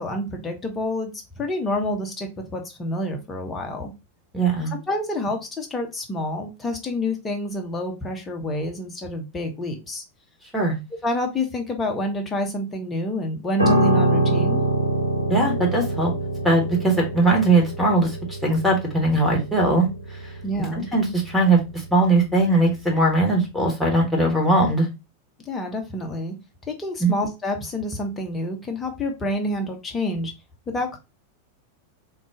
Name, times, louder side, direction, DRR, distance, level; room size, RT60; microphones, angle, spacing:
voice 1, 0.0-3.9 4.7-10.0 11.0-14.6 20.4-20.9 25.5-26.3 26.7-30.3 30.7-31.0, left 1 dB, 15° left, 3 dB, 0.8 m, -28 dB
voice 2, 4.3-4.7 10.5-10.7 15.3-16.1 16.4-18.2 18.4-20.3 20.7-24.9 27.0-27.1, right 2 dB, ahead, -2 dB, 1.3 m, -20 dB
Piano, 13.6-23.0 23.2-23.5, right 1 dB, 90° left, 0.6 m, -25 dB
3.7 x 2.3 x 3.6 m, 0.25 s
figure-of-eight pair, 90°, 0 cm